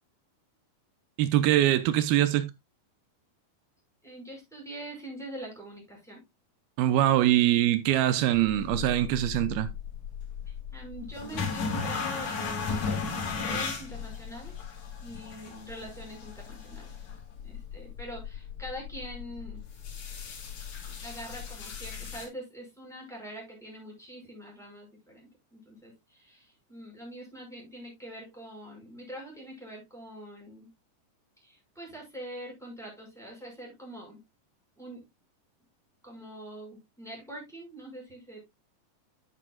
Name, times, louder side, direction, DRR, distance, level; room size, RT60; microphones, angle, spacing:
voice 1, 1.2-2.5 6.8-9.7, right 13 dB, 85° right, 2.6 m, -23 dB
voice 2, 4.0-6.2 10.4-14.5 15.0-16.9 17.4-19.6 20.8-30.7 31.4-34.2 34.8-35.1 36.0-38.4, equal, ahead, 5.0 m, -44 dB
sound 1, 8.3-22.3, left 5 dB, 50° left, 3.7 m, -36 dB
10.0 x 9.0 x 2.3 m
omnidirectional pair, 4.3 m